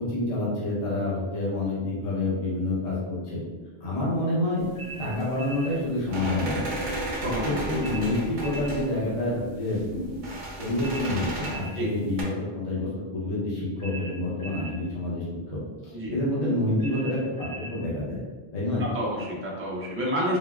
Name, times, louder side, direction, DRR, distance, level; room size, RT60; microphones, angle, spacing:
voice 1, 0.0-3.4 3.8-4.6 5.0-6.6 7.1-10.2 10.6-18.2 18.5-18.9, left 1 dB, 40° left, -7 dB, 0.9 m, -28 dB
sound 1, 4.6-12.2, right 1 dB, 55° right, 0.7 m, -35 dB
sound 2, 4.7-5.8 7.8-8.7 10.8-11.8 13.8-14.7 16.8-17.8, right 2 dB, 65° left, 1.5 m, -40 dB
voice 2, 7.2-7.6 11.7-11.9 15.9-16.2 18.8-20.4, equal, 20° right, -4 dB, 0.4 m, -29 dB
3.6 x 2.1 x 2.3 m, 1.3 s
omnidirectional pair, 1.1 m